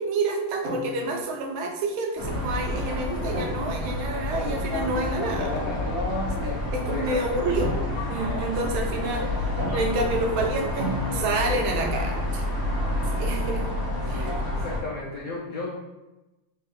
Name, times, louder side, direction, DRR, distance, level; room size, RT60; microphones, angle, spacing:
voice 1, 0.0-5.5 6.3-7.7 8.1-12.5 13.1-13.7 14.1-14.3, right 3 dB, 80° right, 2 dB, 1.4 m, -29 dB
sound 1, 0.6-1.3 3.3-3.9 5.9-6.0 7.6-8.3 9.6-10.2 10.8-11.7, right 1 dB, 50° right, 1.6 m, -34 dB
sound 2, 2.2-14.8, left 1 dB, 20° right, 0.6 m, -29 dB
voice 2, 5.4-5.9 6.9-7.4 14.0-15.7, left 3 dB, 85° left, -5 dB, 0.7 m, -34 dB
4.2 x 2.1 x 3.7 m, 1.0 s
omnidirectional pair, 2.3 m